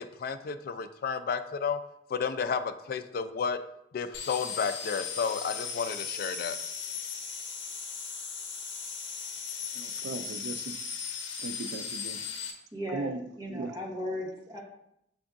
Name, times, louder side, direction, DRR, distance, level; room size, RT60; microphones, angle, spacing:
voice 1, 0.0-1.8 2.1-3.6 3.9-6.6, left 6 dB, 55° left, 0.3 m, -32 dB
sound 1, 4.1-12.5, left 6 dB, 85° left, 0.6 m, -37 dB
voice 2, 9.7-10.7 11.4-12.3 12.9-13.7, right 3 dB, 70° right, 0.3 m, -38 dB
voice 3, 12.7-14.6, equal, 20° right, 0.9 m, -36 dB
6.0 x 3.5 x 2.5 m
head